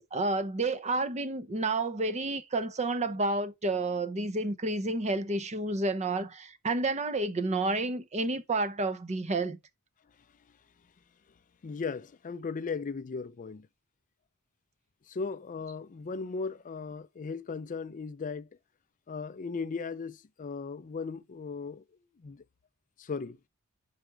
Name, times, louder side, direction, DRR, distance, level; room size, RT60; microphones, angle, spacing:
voice 1, 0.1-9.6, right 2 dB, 30° right, 0.6 m, -30 dB
voice 2, 11.6-13.7 15.1-18.5 19.1-21.8 22.2-22.4 23.0-23.4, left 4 dB, 35° left, 0.4 m, -37 dB
5.0 x 4.6 x 4.4 m
head